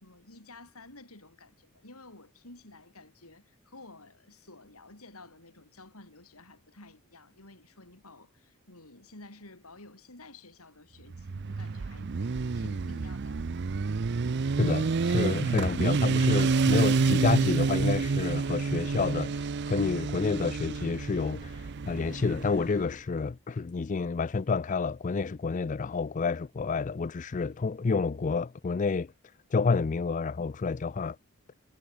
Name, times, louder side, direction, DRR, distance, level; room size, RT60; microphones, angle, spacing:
voice 1, 0.0-12.1 12.5-13.5, left 2 dB, 90° left, 7.8 m, -52 dB
Motorcycle, 11.1-22.8, right 4 dB, 50° right, 0.5 m, -28 dB
voice 2, 14.6-29.1 29.5-31.2, left 4 dB, 35° left, 0.4 m, -29 dB
head